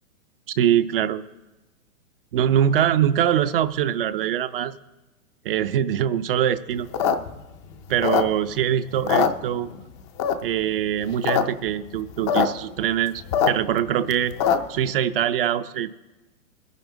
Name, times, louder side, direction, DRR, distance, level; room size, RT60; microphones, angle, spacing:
voice 1, 0.6-1.2 2.3-4.8 5.4-6.9 7.9-9.7 10.4-14.3 14.7-15.9, right 10 dB, 45° right, 10 dB, 0.5 m, -23 dB
sound 1, 6.8-8.6 8.9-9.8 10.2-10.6 11.0-11.4 11.7-11.8 11.9-12.5 12.8-14.8, left 8 dB, 20° left, 0.4 m, -22 dB
21.0 x 10.5 x 3.7 m, 1.1 s
hypercardioid pair, 135°, 43 cm